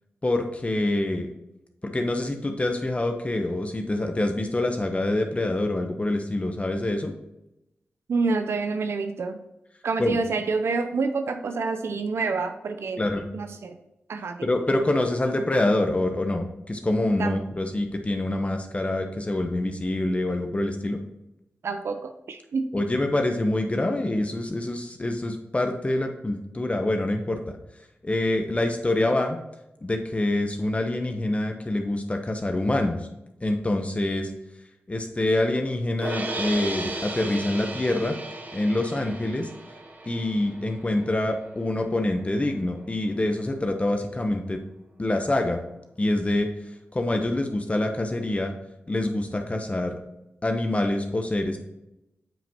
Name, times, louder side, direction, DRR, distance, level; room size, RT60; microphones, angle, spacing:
voice 1, 0.2-1.3 1.8-7.1 10.0-10.2 13.0-13.3 14.4-21.0 22.7-27.6 28.0-29.4 29.8-33.1 33.4-34.3 34.9-38.1 38.5-39.5 40.0-44.6 45.0-45.6 46.0-46.5 46.9-48.5 48.9-49.9 50.4-51.6, left 1 dB, 30° left, 4 dB, 0.9 m, -26 dB
voice 2, 8.1-9.4 9.8-13.1 13.3-13.8 14.1-14.5 17.2-17.4 21.6-22.7, right 4 dB, 75° right, 7 dB, 0.5 m, -27 dB
sound 1, 36.0-42.2, right 2 dB, 45° right, 1.3 m, -35 dB
9.0 x 5.1 x 2.9 m, 0.90 s
cardioid pair, 50°, 4 cm